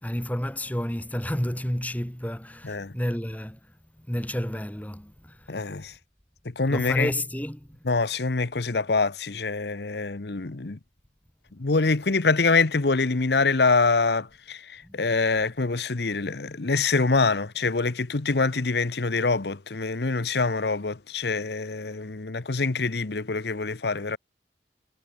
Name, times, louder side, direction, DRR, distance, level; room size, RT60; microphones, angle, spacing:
voice 1, 0.0-3.6 4.0-5.4 6.7-7.7 14.8-15.0, equal, 10° left, 2.1 m, -30 dB
voice 2, 5.5-5.9 6.6-7.1 7.8-10.8 11.6-24.2, left 4 dB, 70° left, 0.9 m, -25 dB
head